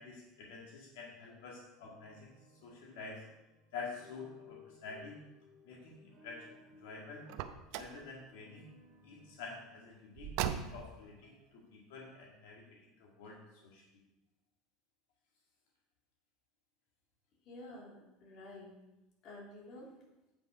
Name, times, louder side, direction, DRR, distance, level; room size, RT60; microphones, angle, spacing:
voice 1, 0.0-2.3 2.6-3.2 3.7-5.2 5.6-7.2 7.7-8.7 9.0-13.4 13.6-13.8, left 4 dB, 85° left, -2 dB, 1.9 m, -48 dB
sound 1, 1.7-11.8, left 5 dB, 30° right, 2.2 m, -61 dB
Car, 7.3-8.0 10.2-11.0, right 10 dB, 65° right, 0.6 m, -38 dB
voice 2, 17.4-18.8 19.2-19.9, left 1 dB, 45° left, -3 dB, 2.7 m, -50 dB
8.4 x 5.6 x 5.1 m, 0.95 s
supercardioid pair, 140°, 0 cm